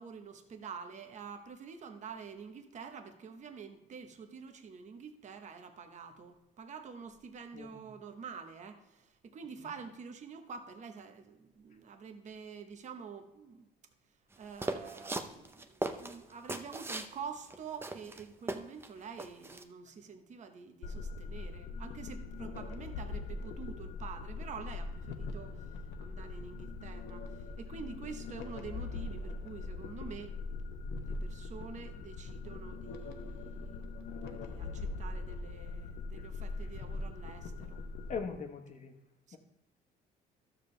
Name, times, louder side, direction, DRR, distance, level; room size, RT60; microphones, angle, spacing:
voice 1, 0.0-13.7 14.4-25.6 26.0-30.3 31.0-37.8 39.3-39.4, right 6 dB, 45° right, 7 dB, 1.1 m, -47 dB
sound 1, 14.6-17.1 17.5-17.6 17.8-18.9 19.2-19.6, right 2 dB, 15° right, 0.7 m, -38 dB
sound 2, 20.8-38.3, left 3 dB, 75° left, 0.9 m, -41 dB
voice 2, 38.1-38.9, left 5 dB, 45° left, 5 dB, 1.2 m, -39 dB
12.5 x 7.0 x 3.3 m, 0.97 s
cardioid pair, 110°, 17 cm